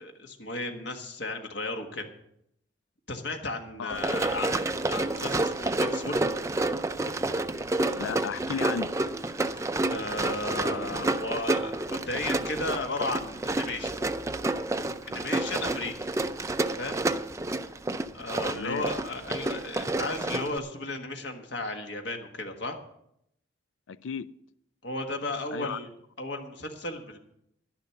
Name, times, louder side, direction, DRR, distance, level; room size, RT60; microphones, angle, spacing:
voice 1, 0.0-2.1 3.1-6.2 9.4-9.6 9.9-13.9 15.1-15.9 16.8-17.0 18.1-22.8 24.8-27.2, left 2 dB, 65° left, 4 dB, 1.5 m, -34 dB
Run, 3.9-20.6, right 2 dB, 15° right, 0.4 m, -29 dB
voice 2, 8.0-8.9 18.5-18.8 23.9-24.3 25.5-25.8, left 6 dB, 85° left, 17 dB, 0.4 m, -34 dB
11.5 x 10.5 x 5.8 m, 0.75 s
head